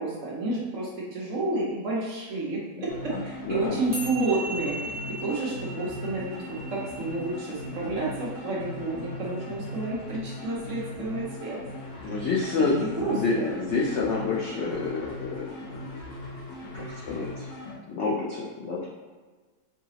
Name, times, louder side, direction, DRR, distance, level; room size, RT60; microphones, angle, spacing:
voice 1, 0.0-11.6 12.0-12.1 12.6-13.5, right 2 dB, 60° right, -4 dB, 0.9 m, -30 dB
voice 2, 2.8-3.7 12.0-16.0 16.7-17.5 17.9-18.9, left 4 dB, 80° left, -4 dB, 0.6 m, -29 dB
sound 1, 2.9-17.8, left 1 dB, 55° left, 1.2 m, -39 dB
sound 2, 3.9-10.5, right 1 dB, 20° right, 0.6 m, -40 dB
4.7 x 2.9 x 2.8 m, 1.4 s
omnidirectional pair, 1.9 m